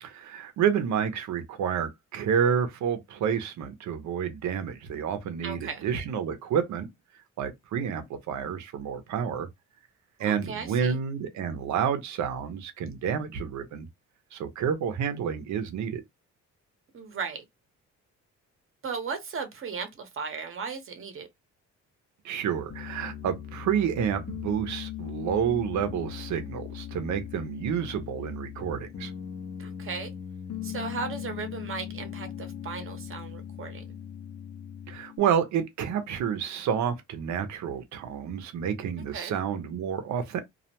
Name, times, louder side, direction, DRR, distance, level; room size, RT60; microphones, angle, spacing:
voice 1, 0.0-6.9 7.4-9.5 10.2-13.9 14.3-16.0 22.2-29.1 34.9-40.4, right 8 dB, 70° right, 0.7 m, -29 dB
voice 2, 5.4-5.8 10.2-11.0 16.9-17.4 18.8-21.3 29.6-30.1 30.6-33.9 39.1-39.3, right 5 dB, 45° right, 0.9 m, -36 dB
Piano, 22.7-35.2, left 10 dB, 55° left, 0.7 m, -39 dB
2.4 x 2.1 x 2.8 m
cardioid pair, 90°, 30 cm